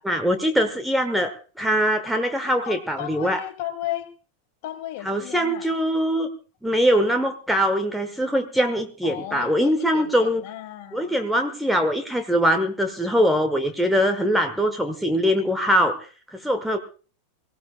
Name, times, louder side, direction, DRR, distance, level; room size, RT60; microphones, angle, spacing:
voice 1, 0.0-1.3 1.6-3.4 5.0-6.3 6.6-10.4 10.9-16.8, equal, ahead, 6 dB, 1.3 m, -22 dB
voice 2, 2.5-4.1 4.6-5.7 9.0-11.2, left 13 dB, 50° left, 7 dB, 2.5 m, -35 dB
23.5 x 15.5 x 2.4 m, 0.37 s
figure-of-eight pair, 90°, 0 cm